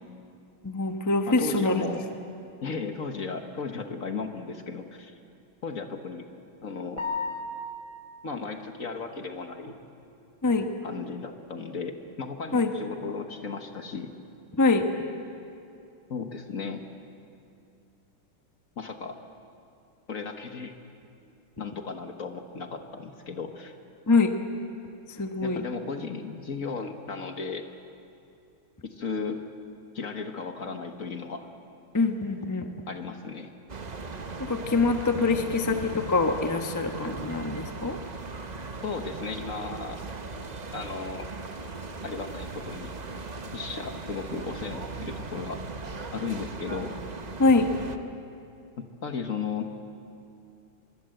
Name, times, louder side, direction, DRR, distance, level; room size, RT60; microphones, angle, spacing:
voice 1, 0.6-1.9 10.4-10.7 12.5-12.7 14.5-14.9 24.1-24.3 25.2-25.6 31.9-32.7 34.5-38.0 47.4-47.7, left 3 dB, 15° left, 5 dB, 0.8 m, -24 dB
voice 2, 1.3-2.1 2.6-5.1 5.6-6.3 6.6-7.1 8.2-9.8 10.8-14.1 16.1-16.8 18.8-19.2 20.1-20.8 21.6-23.8 25.4-27.6 29.0-29.4 29.9-31.5 32.9-33.5 38.8-40.0 40.7-41.3 42.0-42.9 43.5-45.6 46.1-46.9 49.0-49.7, left 5 dB, 45° left, 5 dB, 1.5 m, -35 dB
sound 1, 7.0-8.0, left 3 dB, 35° right, 5.5 m, -33 dB
sound 2, 33.7-48.0, right 3 dB, 65° right, 0.4 m, -38 dB
25.0 x 23.0 x 7.9 m, 2.6 s
omnidirectional pair, 2.3 m